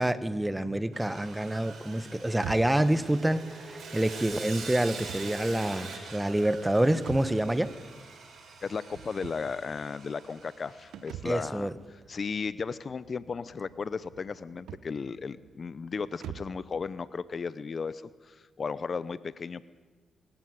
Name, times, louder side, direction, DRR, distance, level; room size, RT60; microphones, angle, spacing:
voice 1, 0.0-7.8 11.2-11.7, right 1 dB, 10° right, 1.3 m, -27 dB
Sawing, 0.9-11.2, right 4 dB, 70° right, 5.6 m, -44 dB
sound 1, 2.3-16.7, right 10 dB, 85° right, 1.0 m, -47 dB
voice 2, 8.6-19.7, left 5 dB, 50° left, 0.7 m, -35 dB
23.5 x 14.5 x 9.3 m
supercardioid pair, 60°, 0 cm